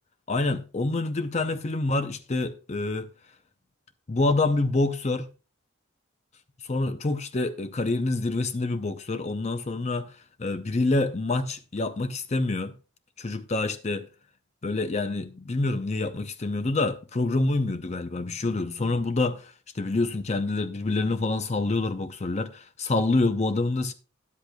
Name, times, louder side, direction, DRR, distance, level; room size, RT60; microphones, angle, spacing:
voice 1, 0.3-3.1 4.1-5.3 6.6-12.7 13.2-14.1 14.6-23.9, left 2 dB, 35° left, 0.6 m, -27 dB
13.0 x 10.5 x 2.3 m
head